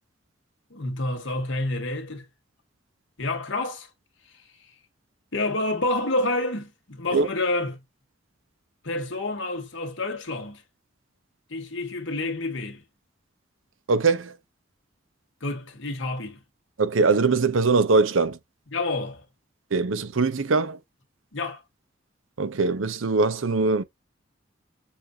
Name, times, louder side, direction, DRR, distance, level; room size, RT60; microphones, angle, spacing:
voice 1, 0.7-2.3 3.2-3.9 5.3-7.8 8.8-10.6 11.5-12.8 15.4-16.4 18.7-19.2 21.3-21.6, left 2 dB, 75° left, 1.7 m, -28 dB
voice 2, 13.9-14.3 16.8-18.4 19.7-20.8 22.4-23.8, right 4 dB, 85° right, 0.7 m, -22 dB
7.0 x 2.6 x 2.8 m
head